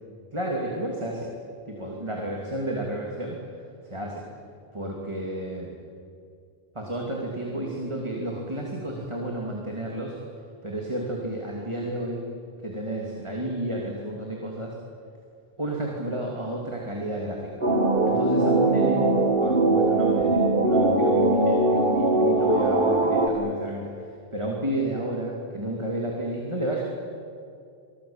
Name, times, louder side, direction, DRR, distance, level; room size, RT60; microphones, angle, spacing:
voice 1, 0.3-1.3 1.7-3.4 3.9-4.3 4.7-5.8 6.7-10.2 10.6-12.2 12.6-14.8 15.6-17.6 18.1-19.1 19.4-26.8, right 1 dB, 30° right, -1 dB, 2.8 m, -31 dB
sound 1, 17.6-23.3, right 2 dB, 55° right, 2.3 m, -21 dB
26.5 x 19.0 x 8.8 m, 2.4 s
omnidirectional pair, 1.1 m